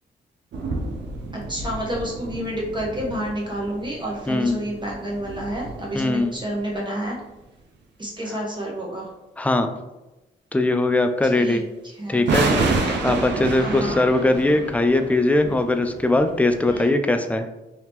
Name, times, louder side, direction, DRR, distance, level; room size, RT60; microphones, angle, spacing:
sound 1, 0.5-6.8 12.3-16.9, right 3 dB, 70° right, 0.6 m, -29 dB
voice 1, 1.5-7.2 8.0-9.1 11.3-11.6 11.8-12.2 13.6-14.0 16.6-17.0, right 1 dB, 25° right, -4 dB, 1.0 m, -29 dB
voice 2, 4.3-4.6 5.9-6.4 9.4-9.7 10.5-11.6 12.1-12.5 13.0-17.5, left 2 dB, 5° left, 7 dB, 0.4 m, -20 dB
2.9 x 2.8 x 3.5 m, 1.0 s
supercardioid pair, 60°, 19 cm